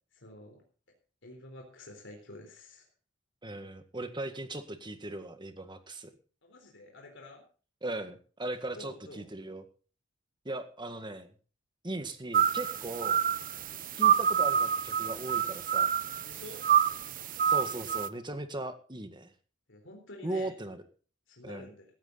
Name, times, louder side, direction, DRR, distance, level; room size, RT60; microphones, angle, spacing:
voice 1, 0.2-0.6 1.2-2.8 6.4-7.4 8.8-9.2 16.2-16.6 19.7-20.5 21.3-21.9, left 1 dB, 65° left, 2 dB, 4.0 m, -49 dB
voice 2, 3.4-6.1 7.8-9.6 10.5-11.3 11.8-13.2 14.0-15.9 17.5-19.3 20.2-20.8 21.4-21.6, right 2 dB, 25° right, 8 dB, 1.8 m, -38 dB
sound 1, 12.3-18.1, right 8 dB, 45° right, 0.9 m, -27 dB
17.0 x 13.5 x 4.1 m, 0.38 s
head